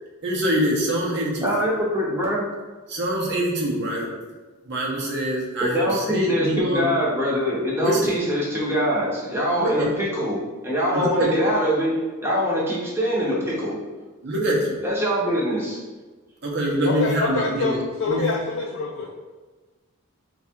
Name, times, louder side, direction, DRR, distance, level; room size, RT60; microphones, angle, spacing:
voice 1, 0.2-1.6 2.9-4.1 4.6-6.9 7.8-8.1 9.6-9.9 10.9-11.3 14.2-14.8 16.4-17.8 18.1-18.3, right 1 dB, 50° right, -2 dB, 0.7 m, -24 dB
voice 2, 1.4-2.4 5.6-13.7 14.8-15.8, equal, 10° right, -7 dB, 0.8 m, -23 dB
voice 3, 16.8-17.7 18.0-19.1, left 3 dB, 60° left, -2 dB, 0.4 m, -25 dB
3.3 x 2.3 x 4.3 m, 1.3 s
head